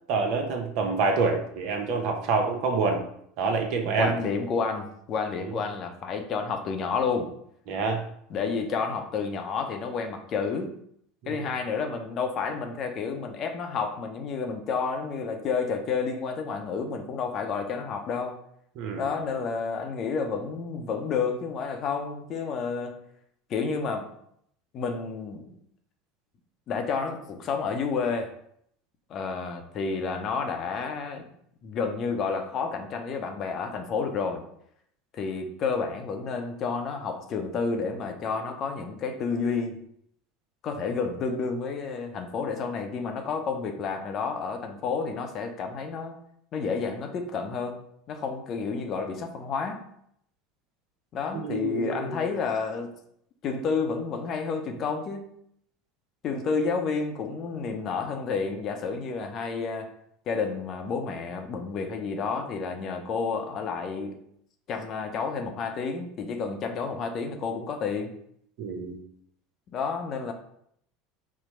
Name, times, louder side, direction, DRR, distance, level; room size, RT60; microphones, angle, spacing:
voice 1, 0.1-3.0 3.4-4.2 5.4-5.5 7.7-8.0 11.2-11.4 18.8-19.1 51.3-52.3 68.6-69.0, right 4 dB, 60° right, 3 dB, 0.9 m, -27 dB
voice 2, 4.0-7.3 8.3-10.8 11.3-18.4 19.0-23.0 23.5-24.1 24.7-25.6 26.7-28.3 29.1-31.3 31.6-34.4 35.1-39.8 40.6-46.2 46.5-47.8 48.1-49.8 51.1-52.9 53.4-55.3 56.2-59.9 60.3-64.2 64.7-68.1 69.7-70.3, left 5 dB, 45° left, 5 dB, 0.7 m, -30 dB
4.3 x 2.2 x 4.3 m, 0.69 s
hypercardioid pair, 80°, 0 cm